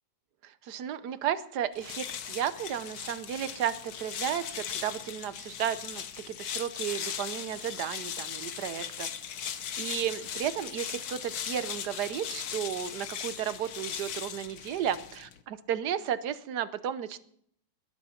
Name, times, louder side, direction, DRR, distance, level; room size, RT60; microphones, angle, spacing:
voice 1, 0.4-9.1 9.8-17.2, right 10 dB, 70° right, 14 dB, 1.4 m, -33 dB
sound 1, 1.7-15.4, left 8 dB, 60° left, 1.3 m, -38 dB
21.0 x 9.1 x 5.8 m, 0.67 s
omnidirectional pair, 1.9 m